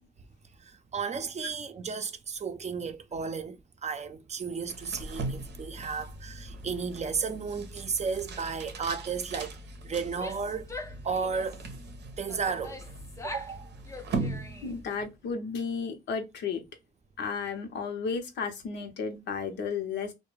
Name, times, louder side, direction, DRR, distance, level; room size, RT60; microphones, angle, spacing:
voice 1, 0.6-9.6 9.8-10.7 11.0-11.6 12.2-12.8 13.2-13.7, right 5 dB, 40° right, 0.5 m, -33 dB
sound 1, 4.6-15.1, right 3 dB, 85° right, 0.7 m, -40 dB
Female speech woman speaking / Yell, 10.1-11.7 12.3-13.6 13.8-14.8, left 2 dB, 15° left, 0.6 m, -43 dB
voice 2, 14.6-16.6 17.2-20.1, left 5 dB, 85° left, 0.7 m, -33 dB
2.3 x 2.1 x 3.0 m
cardioid pair, 65°, 18 cm